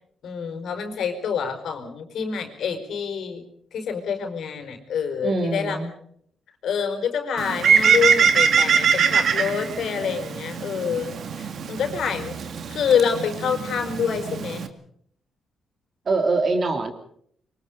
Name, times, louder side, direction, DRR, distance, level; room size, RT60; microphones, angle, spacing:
voice 1, 0.2-3.4 3.7-5.8 6.6-12.4 12.7-14.7, left 7 dB, 65° left, 7 dB, 5.0 m, -26 dB
voice 2, 5.2-5.9 16.0-16.9, right 3 dB, 35° right, 5 dB, 3.2 m, -23 dB
Bird, 7.4-14.7, right 6 dB, 50° right, 2.2 m, -22 dB
26.0 x 24.5 x 5.3 m, 0.65 s
cardioid pair, 145°, 0 cm